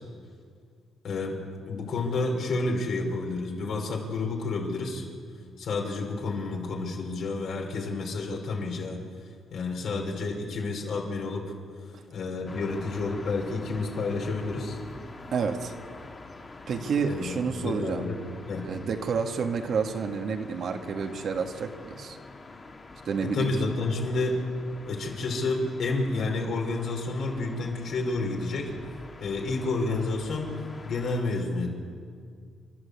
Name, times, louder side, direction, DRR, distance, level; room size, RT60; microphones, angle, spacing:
voice 1, 1.0-5.1 5.6-9.0 9.5-11.5 12.1-14.8 17.1-18.2 18.5-18.7 23.2-24.5 24.9-28.7 29.2-30.5 30.8-31.8, left 3 dB, 65° left, 0 dB, 5.3 m, -30 dB
sound 1, 12.5-31.2, left 3 dB, 30° left, 2.3 m, -46 dB
voice 2, 15.3-15.7 16.7-18.0 18.6-22.2 23.0-23.5, right 5 dB, 60° right, 4 dB, 2.0 m, -29 dB
29.5 x 12.5 x 8.4 m, 2.2 s
cardioid pair, 90°, 0 cm